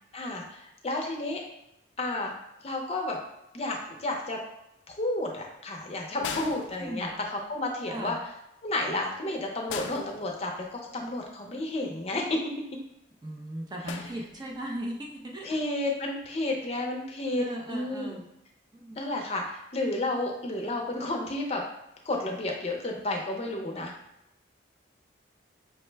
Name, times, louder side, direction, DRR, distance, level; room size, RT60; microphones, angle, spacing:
voice 1, 0.1-1.4 2.0-2.3 2.6-3.2 3.5-4.4 4.9-8.2 8.6-12.4 15.4-18.2 19.0-21.6 22.1-23.9, left 2 dB, 35° left, 1 dB, 0.5 m, -31 dB
sound 1, 6.2-7.5 9.7-10.9 13.9-14.8 16.1-16.3, left 6 dB, 85° left, 0.4 m, -39 dB
voice 2, 6.8-7.1 7.9-8.2 13.2-15.5 17.4-18.2 18.7-19.0, right 1 dB, 20° right, -1 dB, 0.4 m, -37 dB
5.3 x 2.1 x 3.3 m, 0.84 s
head